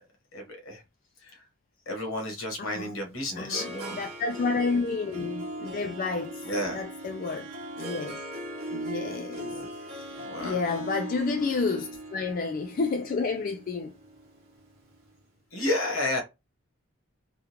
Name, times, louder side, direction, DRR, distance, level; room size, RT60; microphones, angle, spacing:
voice 1, 0.3-0.8 1.2-1.4 1.9-4.0 6.4-6.8 9.5-9.7 10.3-10.6 15.5-16.2, left 1 dB, 70° left, 1.3 m, -31 dB
voice 2, 2.6-2.9 3.4-7.5 7.8-8.2 8.7-13.9, left 4 dB, 40° left, 0.3 m, -30 dB
Harp, 2.8-15.0, right 1 dB, 45° right, 0.9 m, -39 dB
3.5 x 2.3 x 2.9 m
head